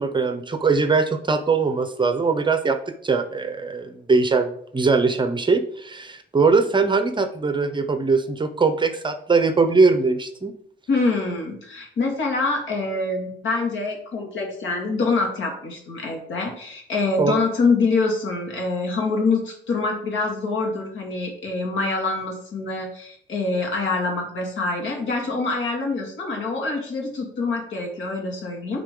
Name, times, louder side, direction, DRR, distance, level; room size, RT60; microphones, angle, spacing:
voice 1, 0.0-2.8 3.0-10.5 17.2-17.3, right 4 dB, 25° right, 8 dB, 0.7 m, -21 dB
voice 2, 10.9-28.8, left 3 dB, 75° left, 1 dB, 2.4 m, -25 dB
9.4 x 3.8 x 3.8 m, 0.67 s
cardioid pair, 90°, 20 cm